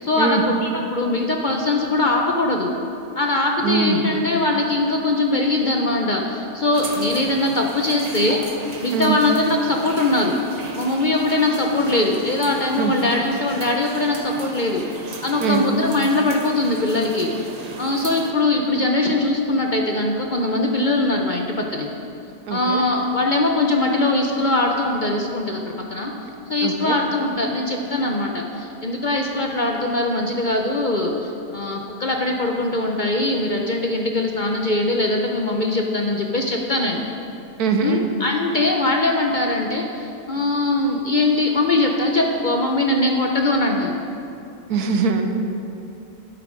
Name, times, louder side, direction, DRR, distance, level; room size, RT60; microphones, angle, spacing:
voice 1, 0.0-2.7 3.2-8.4 8.8-10.3 10.8-14.8 15.2-17.3 17.8-21.9 22.5-25.6 25.9-26.1 26.5-37.0 37.8-43.9, left 2 dB, 45° left, 1 dB, 0.6 m, -21 dB
voice 2, 3.6-4.0 8.9-9.2 12.8-12.9 15.4-15.6 22.5-22.8 26.6-27.0 37.6-38.0 44.7-45.2, right 5 dB, 90° right, 5 dB, 1.4 m, -22 dB
sound 1, 6.7-18.3, right 3 dB, 40° right, 0.6 m, -36 dB
12.0 x 7.9 x 5.1 m, 2.7 s
omnidirectional pair, 1.6 m